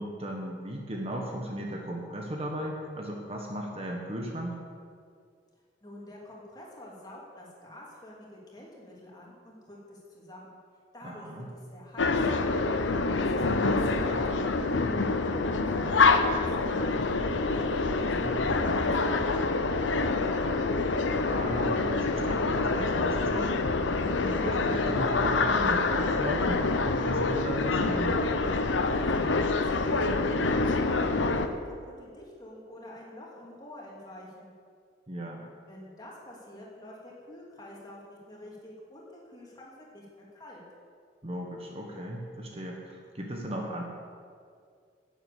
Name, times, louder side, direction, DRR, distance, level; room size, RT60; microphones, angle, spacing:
voice 1, 0.0-4.6 11.0-11.5 18.0-18.3 21.3-23.7 24.2-28.2 35.1-35.4 41.2-43.8, right 1 dB, 35° right, 0 dB, 1.3 m, -36 dB
voice 2, 5.8-10.6 10.9-12.3 13.1-17.1 17.5-19.4 19.7-19.8 20.2-20.7 28.9-34.5 35.7-40.6, left 1 dB, 20° left, -4 dB, 2.7 m, -47 dB
sound 1, 12.0-31.5, left 3 dB, 90° left, 0.8 m, -26 dB
11.0 x 7.7 x 8.3 m, 2.2 s
head